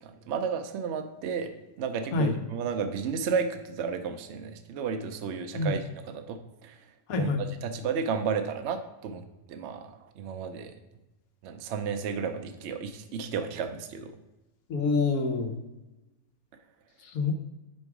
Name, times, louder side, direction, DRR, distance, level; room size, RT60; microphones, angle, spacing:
voice 1, 0.0-1.5 1.8-6.4 6.6-6.8 7.2-7.3 7.6-9.2 9.5-10.7 11.4-14.1, right 6 dB, 65° right, 7 dB, 0.7 m, -32 dB
voice 2, 7.1-7.4 14.7-15.5 17.0-17.3, left 4 dB, 75° left, 5 dB, 1.3 m, -27 dB
5.3 x 4.8 x 4.7 m, 1.0 s
omnidirectional pair, 1.5 m